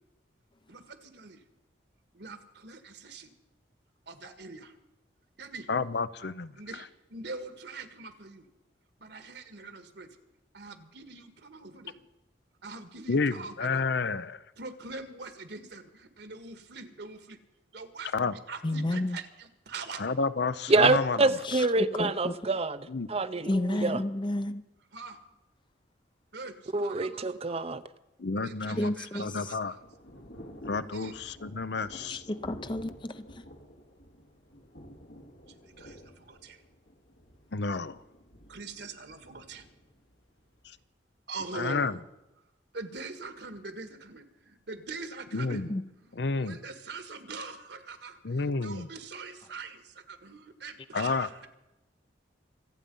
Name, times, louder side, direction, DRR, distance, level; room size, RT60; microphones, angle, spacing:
voice 1, 0.7-1.4 2.1-3.3 4.1-4.7 5.4-5.7 6.6-8.5 9.0-10.1 10.5-12.0 12.6-13.9 14.6-17.4 17.7-20.0 24.9-25.2 26.3-27.6 28.3-29.8 30.9-31.2 35.6-36.6 38.5-39.7 41.3-42.0 42.7-45.7 46.0-51.5, right 4 dB, 65° right, 9 dB, 1.7 m, -43 dB
voice 2, 5.7-6.5 13.1-14.4 18.1-18.3 20.0-21.3 22.9-23.1 28.2-28.9 29.2-29.7 30.7-32.2 37.5-38.0 41.5-42.0 45.3-45.7 46.1-46.6 48.2-48.9 50.9-51.3, left 4 dB, 65° left, 14 dB, 0.7 m, -30 dB
voice 3, 18.6-19.2 21.8-22.3 23.5-24.6 28.7-29.2 32.1-33.2 45.7-45.8, left 1 dB, 25° left, 12 dB, 0.7 m, -31 dB
voice 4, 20.7-24.0 26.7-27.8, right 3 dB, 35° right, 13 dB, 0.7 m, -26 dB
Thunder / Rain, 29.1-40.8, equal, 80° left, 2.4 m, -51 dB
26.0 x 8.8 x 5.4 m, 0.98 s
head